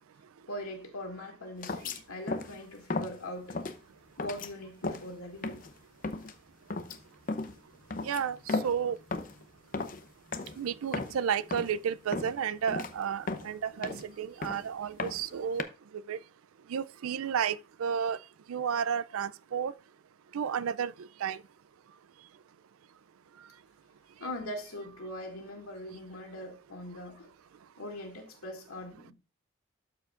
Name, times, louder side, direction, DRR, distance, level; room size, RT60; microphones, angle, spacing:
voice 1, 0.5-3.6 4.2-5.6 24.2-27.3 27.8-29.1, left 1 dB, 85° left, 2.3 m, -41 dB
sound 1, 1.6-2.0 2.3-2.6 2.9-3.2 3.5-3.8 4.2-4.5 4.8-5.1 5.4-5.7 6.0-6.3 6.7-7.0 7.3-7.6 7.9-8.8 9.1-9.4 9.7-10.0 10.3-10.6 10.8-11.2 11.5-11.8 12.1-12.4 12.7-12.9 13.3-14.1 14.4-14.7 15.0-15.6, left 3 dB, 40° left, 0.6 m, -35 dB
voice 2, 8.0-8.4 8.6-9.0 10.6-15.7 16.1-16.2 16.7-18.2 18.5-19.7 20.3-20.9 21.2-21.4, right 7 dB, 75° right, 0.4 m, -32 dB
12.5 x 4.7 x 2.4 m
head